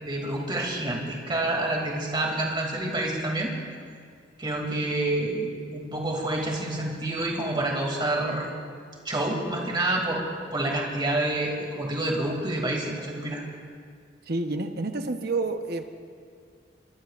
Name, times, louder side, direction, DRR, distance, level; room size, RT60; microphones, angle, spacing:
voice 1, 0.0-3.5 4.4-8.5 9.0-10.2 10.5-13.4, right 1 dB, 25° right, -1 dB, 2.6 m, -28 dB
voice 2, 14.3-15.8, right 3 dB, 60° right, 6 dB, 1.0 m, -29 dB
24.0 x 21.0 x 2.5 m, 2.1 s
head